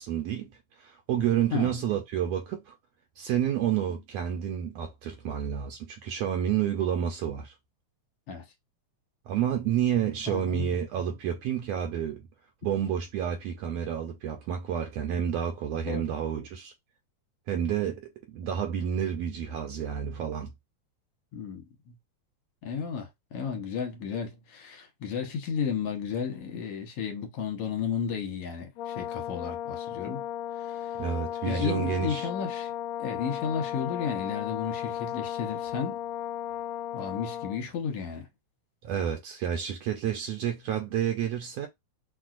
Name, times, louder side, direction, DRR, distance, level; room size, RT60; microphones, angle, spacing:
voice 1, 0.0-2.7 3.2-7.5 9.3-12.2 12.6-16.7 17.5-20.5 31.0-32.3 38.8-41.7, right 9 dB, 75° right, 1.6 m, -30 dB
voice 2, 10.3-10.8 15.9-16.0 21.3-21.9 22.6-30.2 30.5-31.0 31.5-32.7 33.0-35.9 36.9-38.3, left 7 dB, 65° left, 1.8 m, -33 dB
Brass instrument, 28.8-37.6, left 11 dB, 80° left, 1.6 m, -35 dB
6.1 x 2.4 x 2.4 m
omnidirectional pair, 3.3 m